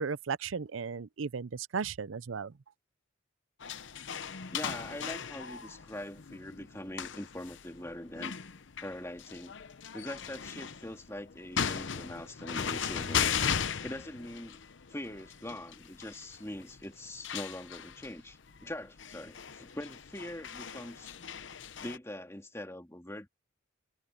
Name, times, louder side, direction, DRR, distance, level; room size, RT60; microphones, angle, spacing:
voice 1, 0.0-2.5, right 5 dB, 75° right, 0.6 m, -35 dB
sound 1, 3.6-22.0, left 7 dB, 65° left, 0.8 m, -38 dB
voice 2, 4.5-8.3 8.8-9.5 9.9-13.4 13.8-14.6 14.9-21.2 21.8-23.3, left 1 dB, 15° left, 2.2 m, -42 dB
head